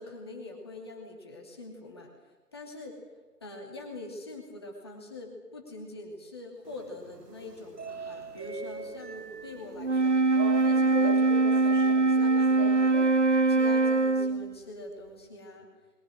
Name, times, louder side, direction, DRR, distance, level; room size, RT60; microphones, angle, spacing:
voice 1, 0.0-2.1 2.5-3.0 3.4-13.0 13.5-15.7, left 2 dB, 15° left, 0 dB, 2.6 m, -44 dB
sound 1, 6.6-13.6, right 4 dB, 80° right, 1.4 m, -41 dB
Wind instrument woodwind instrument, 9.8-14.6, right 3 dB, 45° right, 1.1 m, -23 dB
29.5 x 22.5 x 6.4 m, 1.2 s
figure-of-eight pair, 165°, 47 cm